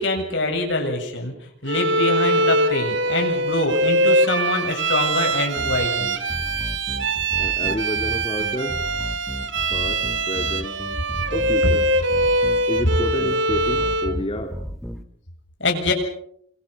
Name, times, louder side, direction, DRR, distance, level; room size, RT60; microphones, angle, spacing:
voice 1, 0.0-1.3 1.6-6.1 15.6-15.9, left 2 dB, 65° left, 3 dB, 7.7 m, -24 dB
Bowed string instrument, 1.7-14.2, right 1 dB, 70° right, 2.2 m, -23 dB
sound 1, 5.5-15.0, equal, ahead, 2.2 m, -34 dB
voice 2, 7.4-8.8 9.7-10.8 11.3-11.8 12.7-14.6, equal, 30° left, 5 dB, 2.5 m, -29 dB
28.0 x 25.5 x 5.9 m, 0.67 s
head